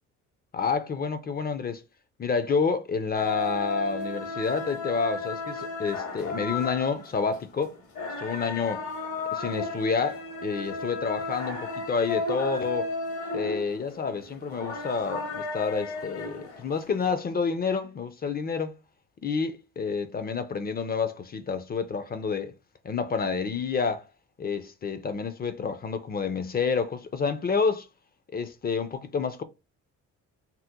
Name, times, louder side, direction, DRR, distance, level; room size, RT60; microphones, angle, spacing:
voice 1, 0.5-1.8 2.2-7.7 8.2-8.8 9.4-12.9 13.3-18.7 19.2-22.5 22.8-24.1 24.4-27.9 28.3-29.4, left 5 dB, 30° left, 0.4 m, -29 dB
sound 1, 3.1-17.1, left 3 dB, 75° left, 1.1 m, -34 dB
2.8 x 2.1 x 3.5 m
cardioid pair, 90°, 30 cm